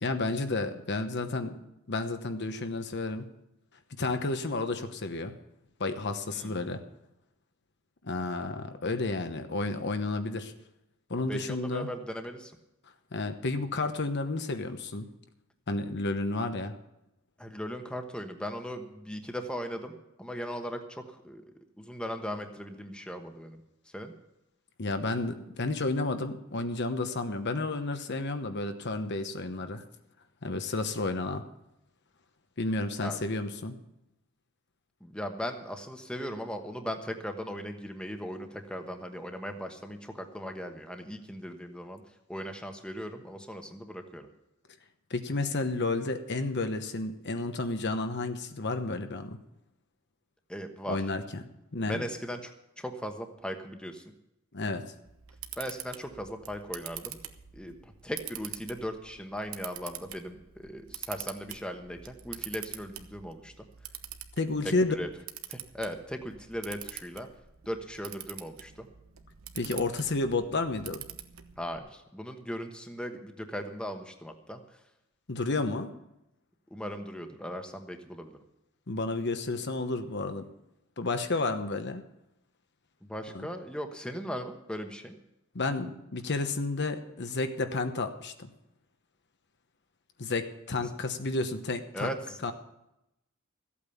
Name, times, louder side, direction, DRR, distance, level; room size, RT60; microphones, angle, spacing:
voice 1, 0.0-3.3 3.9-5.3 5.8-6.8 8.0-10.5 11.1-11.9 13.1-15.1 15.7-16.8 24.8-29.8 30.4-31.4 32.6-33.8 45.1-49.4 50.9-51.4 51.7-52.0 54.5-54.8 64.4-64.9 69.5-71.1 75.3-75.9 78.9-80.4 81.0-82.0 83.3-83.5 85.5-88.5 90.2-92.1 92.4-92.5, left 3 dB, 55° left, 8 dB, 1.0 m, -31 dB
voice 2, 11.2-12.5 17.4-21.4 21.8-23.6 23.9-24.1 33.0-33.2 35.0-42.0 42.3-44.3 50.5-51.0 51.9-54.0 55.6-57.2 57.5-63.5 64.9-65.1 65.5-67.3 67.6-68.9 71.6-74.8 76.7-78.4 83.0-85.2 90.8-90.9 91.9-92.4, equal, 5° left, 5 dB, 1.2 m, -38 dB
Camera, 55.0-71.8, right 11 dB, 75° right, 1.1 m, -45 dB
14.5 x 8.6 x 7.1 m, 0.86 s
head